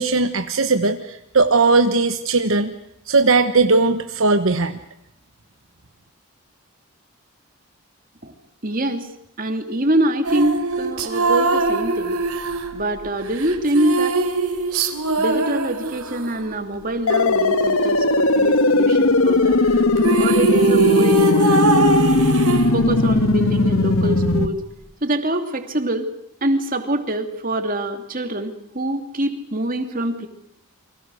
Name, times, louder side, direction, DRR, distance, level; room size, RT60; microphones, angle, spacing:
voice 1, 0.0-2.7 3.1-4.8, right 3 dB, 65° right, 7 dB, 1.2 m, -18 dB
voice 2, 8.6-9.1 9.4-12.2 12.7-14.2 15.2-19.6 20.2-22.0 22.7-24.6 25.0-26.1 26.4-30.3, right 1 dB, 40° right, 6 dB, 2.7 m, -24 dB
sound 1, 10.2-16.4 19.7-19.8 20.0-23.2, right 3 dB, 85° right, 3.5 m, -21 dB
sound 2, 17.1-24.5, left 2 dB, 70° left, 1.5 m, -18 dB
30.0 x 24.5 x 6.4 m, 0.72 s
head